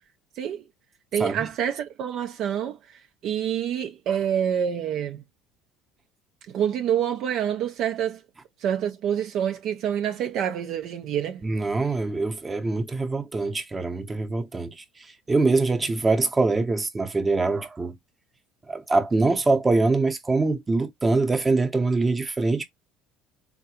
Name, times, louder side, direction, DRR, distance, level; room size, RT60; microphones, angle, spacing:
voice 1, 1.1-5.2 6.5-8.2 8.6-11.4, right 9 dB, 60° right, 0.5 m, -27 dB
voice 2, 11.4-14.8 15.3-18.0 18.7-22.6, right 3 dB, 20° right, 0.8 m, -24 dB
3.7 x 2.2 x 2.8 m
supercardioid pair, 85°, 0 cm